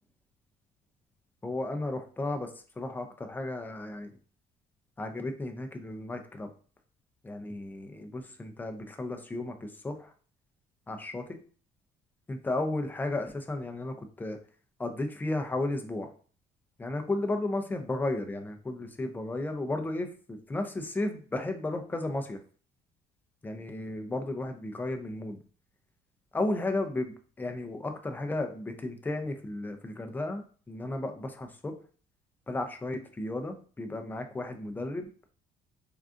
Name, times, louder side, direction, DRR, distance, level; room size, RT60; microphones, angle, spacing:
voice 1, 1.4-4.1 5.0-6.5 7.2-10.1 10.9-11.4 12.3-14.4 14.8-16.1 16.8-22.4 23.4-25.4 26.3-30.4 30.7-31.7 32.5-35.1, left 2 dB, 10° left, 6 dB, 0.4 m, -34 dB
3.6 x 2.3 x 2.4 m, 0.41 s
cardioid pair, 110°, 17 cm